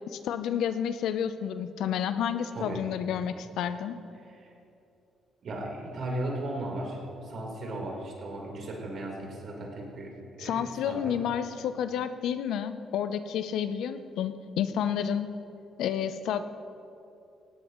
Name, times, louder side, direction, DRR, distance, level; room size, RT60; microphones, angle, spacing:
voice 1, 0.1-4.0 10.4-15.3 15.8-16.4, left 9 dB, 80° left, 11 dB, 0.7 m, -30 dB
voice 2, 5.4-11.2, right 1 dB, 60° right, -1 dB, 4.0 m, -36 dB
18.0 x 17.0 x 3.1 m, 2.7 s
cardioid pair, 90°, 0 cm